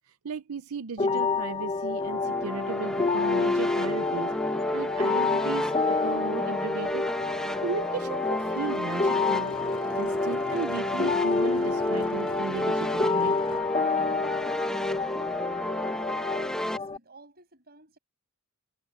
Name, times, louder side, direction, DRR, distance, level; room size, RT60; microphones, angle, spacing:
voice 1, 0.1-4.3 4.7-7.0 7.6-9.6 10.0-13.4, right 4 dB, 75° right, 0.6 m, -36 dB
sound 1, 1.0-17.0, left 4 dB, 25° left, 0.7 m, -28 dB
sound 2, 2.0-16.8, equal, 5° left, 1.0 m, -32 dB
Motorcycle, 4.6-13.6, left 2 dB, 70° left, 2.0 m, -51 dB
voice 2, 16.6-18.0, right 3 dB, 45° right, 7.6 m, -53 dB
head